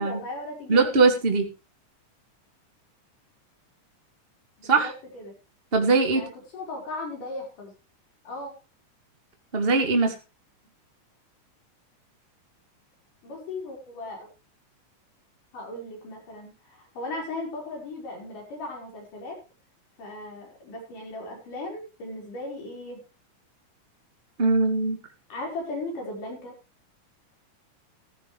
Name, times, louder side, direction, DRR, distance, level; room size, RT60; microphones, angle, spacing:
voice 1, 0.0-0.8 4.6-5.3 6.1-7.7 8.2-8.5 13.2-14.3 15.5-19.4 20.0-23.0 25.3-26.5, left 2 dB, 90° left, 0 dB, 6.7 m, -37 dB
voice 2, 0.7-1.5 4.7-4.9 5.7-6.2 9.5-10.1 24.4-25.0, right 3 dB, 20° right, 4 dB, 1.9 m, -21 dB
14.5 x 14.0 x 3.3 m, 0.29 s
omnidirectional pair, 3.6 m